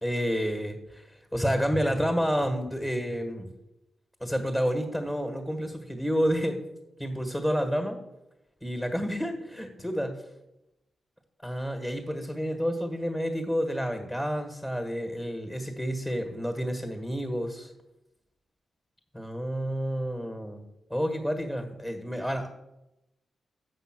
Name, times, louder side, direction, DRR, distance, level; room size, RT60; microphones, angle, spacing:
voice 1, 0.0-3.5 4.2-6.6 7.0-8.0 8.6-10.2 11.4-17.7 19.1-20.6 20.9-22.5, equal, 15° left, 5 dB, 1.6 m, -29 dB
7.7 x 5.5 x 6.1 m, 0.92 s
supercardioid pair, 55°, 0 cm